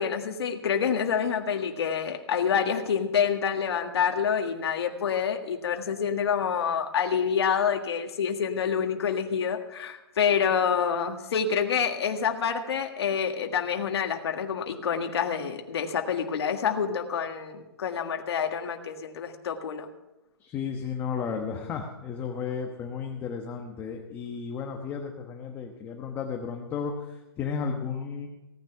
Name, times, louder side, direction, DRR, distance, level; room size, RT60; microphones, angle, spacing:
voice 1, 0.0-19.9, left 7 dB, 75° left, 4 dB, 1.7 m, -27 dB
voice 2, 20.4-28.3, left 6 dB, 15° left, 2 dB, 1.1 m, -33 dB
17.0 x 10.0 x 5.8 m, 0.96 s
hypercardioid pair, 165°, 14 cm